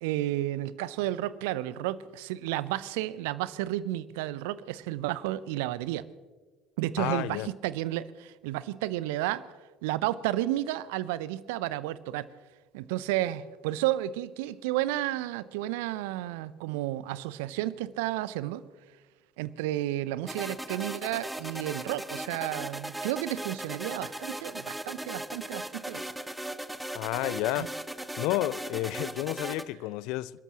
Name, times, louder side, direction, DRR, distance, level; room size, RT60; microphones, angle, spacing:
voice 1, 0.0-6.1 6.8-9.4 9.8-12.3 12.7-18.6 19.4-26.0 27.6-27.7, right 15 dB, 65° right, 0.6 m, -32 dB
voice 2, 7.0-7.5 26.9-27.7 28.2-30.3, left 16 dB, 60° left, 0.4 m, -31 dB
sound 1, 20.3-29.6, right 1 dB, 5° right, 0.9 m, -38 dB
29.0 x 13.5 x 3.0 m
figure-of-eight pair, 60°, 0 cm